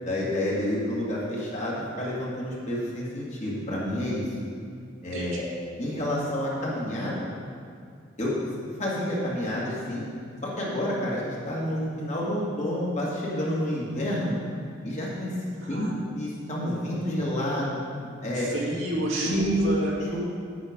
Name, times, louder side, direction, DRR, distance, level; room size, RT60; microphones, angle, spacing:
voice 1, 0.0-4.3 5.0-5.5 5.8-7.2 8.2-8.3 8.8-10.0 10.4-14.4 14.8-15.9 16.1-17.8 18.2-18.5 19.2-19.6 20.1-20.2, left 1 dB, 35° left, -5 dB, 2.1 m, -29 dB
voice 2, 15.6-15.9 18.3-19.9, right 1 dB, 85° right, -5 dB, 2.2 m, -30 dB
8.6 x 8.0 x 5.1 m, 2.2 s
head